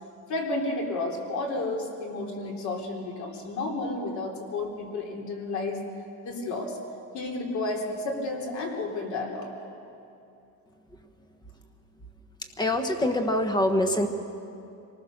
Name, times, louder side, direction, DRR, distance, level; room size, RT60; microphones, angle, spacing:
voice 1, 0.3-5.8 6.2-6.8 7.1-9.5, left 2 dB, 50° left, 0 dB, 3.7 m, -31 dB
voice 2, 12.4-14.1, left 1 dB, 10° left, 6 dB, 1.3 m, -25 dB
25.5 x 20.0 x 6.6 m, 2.7 s
cardioid pair, 165°, 36 cm